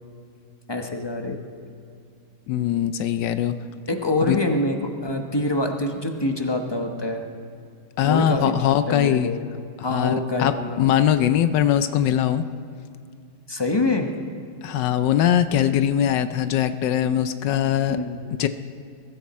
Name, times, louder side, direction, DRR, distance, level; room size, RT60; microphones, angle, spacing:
voice 1, 0.7-1.4 3.9-7.3 8.0-8.5 8.9-9.4 9.8-10.9 13.5-14.2 17.9-18.2, left 2 dB, 20° left, 4 dB, 0.8 m, -25 dB
voice 2, 2.5-3.5 4.3-4.4 8.0-9.3 9.8-12.4 14.6-18.0 18.4-18.5, left 10 dB, 85° left, 11 dB, 1.3 m, -21 dB
22.0 x 13.5 x 4.3 m, 2.4 s
omnidirectional pair, 1.9 m